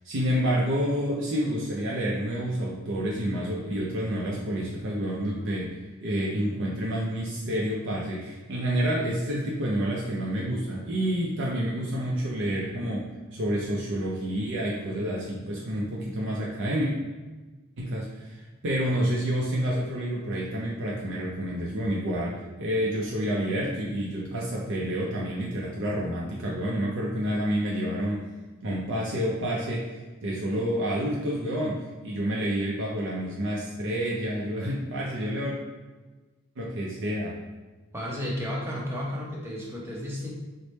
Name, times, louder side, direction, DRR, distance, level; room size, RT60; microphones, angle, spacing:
voice 1, 0.0-5.7 6.0-16.9 17.8-28.3 28.6-35.5 36.6-37.4, equal, 55° right, -4 dB, 0.5 m, -29 dB
voice 2, 37.9-40.3, equal, 10° right, -4 dB, 0.7 m, -32 dB
3.2 x 2.1 x 4.1 m, 1.2 s
head